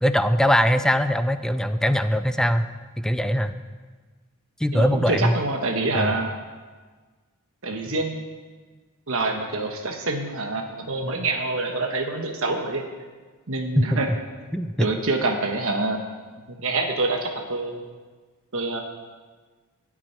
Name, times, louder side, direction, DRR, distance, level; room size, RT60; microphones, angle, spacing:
voice 1, 0.0-2.7 3.0-3.5 4.6-5.4 5.9-6.2 13.8-14.2 14.5-14.9, equal, 5° left, 11 dB, 0.4 m, -21 dB
voice 2, 4.7-6.3 7.6-8.2 9.1-12.9 13.5-14.1 14.8-16.0 16.5-17.8 18.5-18.8, right 2 dB, 65° right, 3 dB, 1.2 m, -26 dB
13.5 x 6.1 x 9.7 m, 1.4 s
head